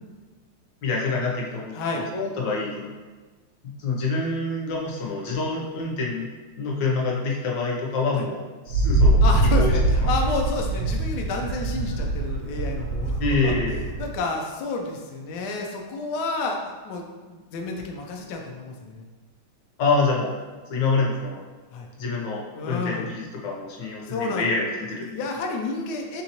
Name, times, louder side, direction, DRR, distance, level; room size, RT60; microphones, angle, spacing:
voice 1, 0.8-2.9 3.8-6.3 6.6-9.2 9.6-9.7 13.2-13.8 19.8-20.4 20.7-21.4 22.0-25.1, left 3 dB, 65° left, -2 dB, 1.2 m, -26 dB
voice 2, 1.7-2.0 8.1-8.3 9.2-13.5 14.0-19.1 21.7-21.9 22.6-23.1 24.1-24.5 25.0-26.2, left 3 dB, 90° left, 2 dB, 0.9 m, -30 dB
Wind, 8.7-14.2, right 2 dB, 80° right, 1.4 m, -23 dB
4.1 x 3.6 x 2.9 m, 1.4 s
omnidirectional pair, 2.4 m